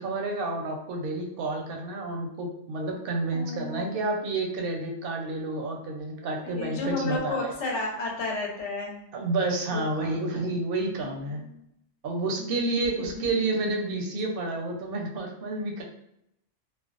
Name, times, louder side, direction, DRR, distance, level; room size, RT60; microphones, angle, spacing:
voice 1, 0.0-7.5 9.1-11.4 12.0-15.8, right 2 dB, 60° right, 1 dB, 0.7 m, -30 dB
voice 2, 3.3-4.0 6.4-9.1 9.7-10.2 10.8-11.7 12.4-13.0 13.3-13.4 15.8-15.9, left 3 dB, 75° left, -1 dB, 1.0 m, -33 dB
2.3 x 2.2 x 2.4 m, 0.78 s
omnidirectional pair, 1.2 m